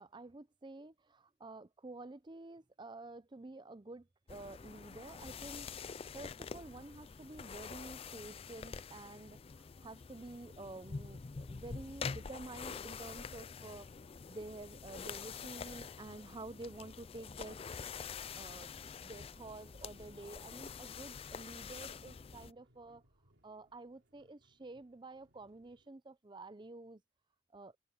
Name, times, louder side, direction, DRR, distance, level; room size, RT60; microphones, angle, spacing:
voice 1, 0.0-5.7 6.1-13.9 14.3-17.6 18.3-23.0 23.4-27.0 27.5-27.7, right 2 dB, 25° right, 0.6 m, -50 dB
sound 1, 4.3-22.5, left 5 dB, 30° left, 0.4 m, -46 dB
sound 2, 20.9-25.9, equal, 75° right, 4.2 m, -72 dB
head